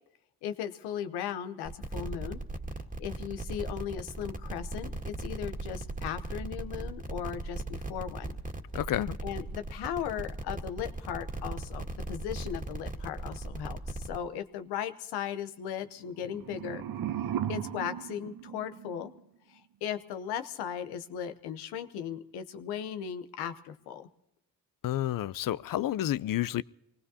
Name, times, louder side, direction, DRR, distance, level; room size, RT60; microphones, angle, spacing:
voice 1, 0.4-2.4 3.0-8.4 9.2-16.8 17.5-19.1 19.5-24.1, left 9 dB, 90° left, 0.9 m, -37 dB
sound 1, 1.7-14.2, right 2 dB, 20° right, 1.9 m, -38 dB
voice 2, 8.7-9.2 24.8-26.6, left 13 dB, 60° left, 0.6 m, -30 dB
sound 2, 16.1-19.2, right 10 dB, 60° right, 0.8 m, -36 dB
24.5 x 19.0 x 2.8 m
supercardioid pair, 50°, 38 cm